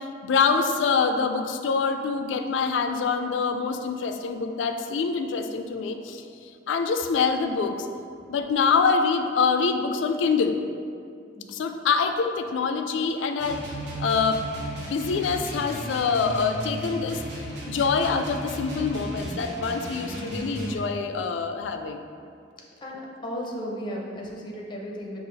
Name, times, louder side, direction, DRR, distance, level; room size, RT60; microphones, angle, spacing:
voice 1, 0.0-6.2 6.7-7.9 8.3-10.6 11.5-13.6 14.0-14.4 14.8-17.2 17.7-22.1, left 5 dB, 90° left, 7 dB, 0.3 m, -25 dB
sound 1, 13.4-20.8, right 1 dB, 70° right, 0.8 m, -35 dB
voice 2, 23.2-25.2, equal, 25° left, -2 dB, 0.6 m, -34 dB
5.5 x 2.4 x 4.0 m, 2.4 s
head